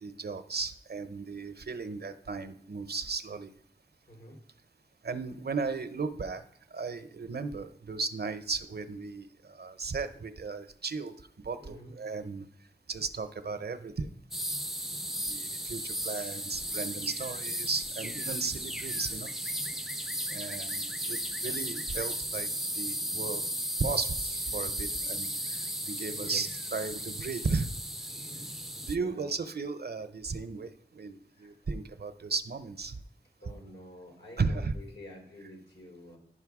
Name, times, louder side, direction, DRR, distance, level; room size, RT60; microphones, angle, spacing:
voice 1, 0.0-3.5 5.0-6.4 6.7-9.3 9.6-11.1 11.4-12.4 12.9-14.1 15.3-19.3 20.3-22.5 22.7-23.4 23.8-27.7 28.9-32.9 34.4-34.7, right 4 dB, 65° right, 11 dB, 0.6 m, -35 dB
voice 2, 4.1-4.4 11.6-11.9 26.1-26.6 28.9-29.4 31.3-31.6 33.4-36.2, left 1 dB, 90° left, 0 dB, 3.2 m, -49 dB
sound 1, 14.3-29.0, equal, ahead, 0.4 m, -35 dB
9.9 x 5.6 x 4.7 m, 0.67 s
wide cardioid pair, 70°, 18 cm